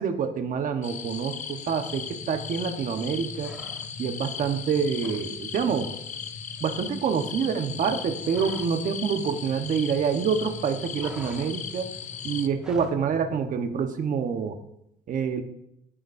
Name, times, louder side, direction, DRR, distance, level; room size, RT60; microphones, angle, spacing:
voice 1, 0.0-3.5 4.0-5.9 6.6-11.9 12.2-14.6 15.1-15.4, right 6 dB, 50° right, 6 dB, 1.2 m, -27 dB
sound 1, 0.8-12.5, left 8 dB, 45° left, 0.8 m, -37 dB
sound 2, 1.7-13.8, left 2 dB, 60° left, 2.2 m, -45 dB
sound 3, 3.3-4.2 4.5-5.3 5.6-5.8 6.1-8.9 9.1-10.2 10.5-13.0, right 1 dB, 5° right, 1.8 m, -47 dB
20.0 x 10.0 x 2.7 m, 0.80 s
cardioid pair, 110°, 17 cm